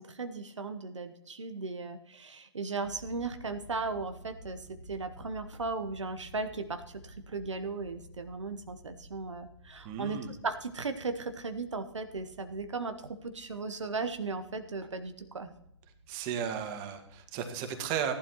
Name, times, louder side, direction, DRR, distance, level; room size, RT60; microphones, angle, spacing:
voice 1, 0.0-15.5, right 3 dB, 80° right, 8 dB, 1.0 m, -37 dB
sound 1, 2.8-17.3, right 1 dB, 85° left, 2.5 m, -54 dB
voice 2, 9.8-10.3 16.1-18.1, right 8 dB, 30° right, 6 dB, 1.7 m, -34 dB
15.5 x 11.5 x 3.0 m, 0.77 s
figure-of-eight pair, 130°, 15 cm